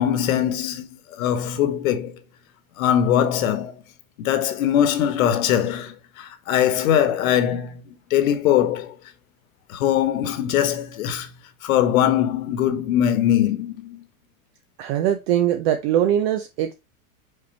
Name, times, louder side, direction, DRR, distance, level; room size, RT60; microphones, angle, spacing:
voice 1, 0.0-2.2 2.8-3.8 4.2-8.9 9.7-11.3 11.6-14.0, left 10 dB, 70° left, 1.5 m, -21 dB
voice 2, 14.8-16.7, right 11 dB, 45° right, 0.8 m, -21 dB
5.7 x 4.6 x 4.1 m
supercardioid pair, 155°, 43 cm